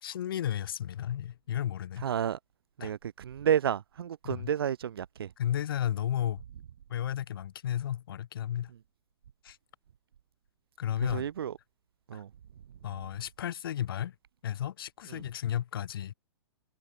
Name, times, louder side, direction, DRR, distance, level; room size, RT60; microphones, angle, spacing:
voice 1, 0.0-2.1 2.8-2.9 4.2-4.5 5.4-6.4 6.9-8.7 9.4-9.6 10.8-11.3 12.1-12.2 12.8-14.1 14.4-16.1, left 10 dB, 55° left, 4.2 m, -33 dB
voice 2, 2.0-2.4 2.8-5.3 11.1-11.5 12.1-12.3, right 9 dB, 60° right, 2.4 m, -30 dB
figure-of-eight pair, 105°, 14 cm